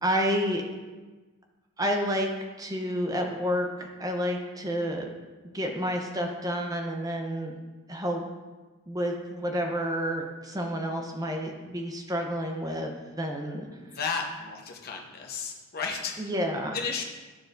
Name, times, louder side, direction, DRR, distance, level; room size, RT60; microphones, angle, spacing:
voice 1, 0.0-0.6 1.8-2.3 2.6-5.1 5.5-7.5 7.9-8.2 8.9-12.9 13.2-13.7 16.2-16.8, equal, 15° right, 2 dB, 0.7 m, -29 dB
voice 2, 13.7-16.2 16.7-17.0, left 5 dB, 45° left, 1 dB, 0.9 m, -33 dB
12.0 x 4.6 x 2.6 m, 1.3 s
head